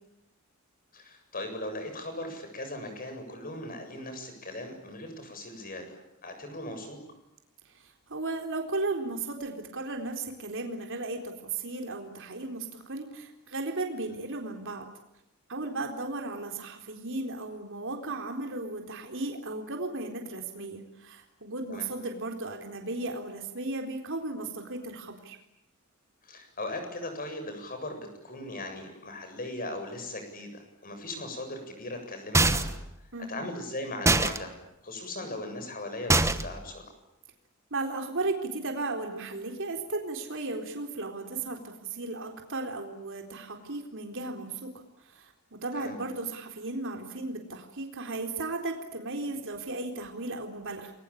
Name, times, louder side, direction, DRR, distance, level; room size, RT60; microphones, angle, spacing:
voice 1, 0.9-7.0 21.7-21.9 26.2-32.8 33.3-34.5 34.8-36.8 45.7-46.0, left 1 dB, 40° left, 6 dB, 7.8 m, -38 dB
voice 2, 7.7-14.8 15.5-25.4 33.1-33.5 37.7-44.7 45.1-50.9, right 2 dB, 60° right, 3 dB, 4.1 m, -35 dB
sound 1, 32.3-32.9 34.1-34.4 36.1-36.6, right 2 dB, 15° right, 1.1 m, -23 dB
30.0 x 22.5 x 8.7 m, 0.84 s
head